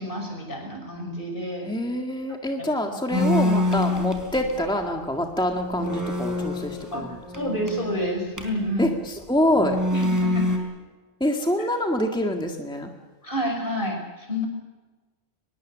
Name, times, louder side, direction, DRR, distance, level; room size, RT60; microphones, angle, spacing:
voice 1, 0.0-1.7 2.3-2.4 6.9-7.0 7.3-8.9 9.9-10.5 11.6-11.7 13.2-14.5, equal, 50° left, 3 dB, 6.3 m, -29 dB
voice 2, 1.6-7.2 8.8-9.8 11.2-12.9, left 1 dB, 5° left, 2 dB, 1.9 m, -25 dB
sound 1, 3.1-4.7 5.2-5.3 5.6-8.7 9.5-10.6, left 1 dB, 15° right, 4.3 m, -26 dB
24.0 x 21.5 x 7.5 m, 1.2 s
omnidirectional pair, 1.1 m